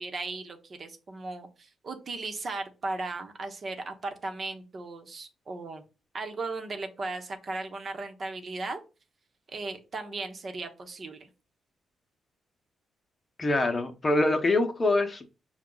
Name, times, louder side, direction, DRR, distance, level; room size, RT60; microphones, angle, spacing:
voice 1, 0.0-5.8 6.1-8.8 9.5-11.3, right 3 dB, 50° right, 1.0 m, -36 dB
voice 2, 13.4-15.4, left 2 dB, 35° left, 0.8 m, -25 dB
5.7 x 2.4 x 3.8 m
supercardioid pair, 55°, 0 cm